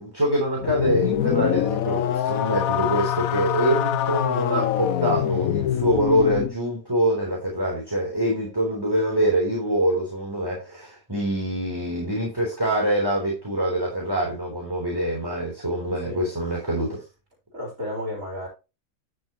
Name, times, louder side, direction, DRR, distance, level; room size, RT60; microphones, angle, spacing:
voice 1, 0.0-17.0, right 1 dB, 15° right, -2 dB, 3.5 m, -25 dB
sound 1, 0.6-6.5, left 11 dB, 80° left, 1.1 m, -24 dB
voice 2, 17.5-18.5, left 1 dB, 60° right, -3 dB, 4.1 m, -32 dB
12.0 x 6.7 x 3.0 m, 0.29 s
omnidirectional pair, 1.5 m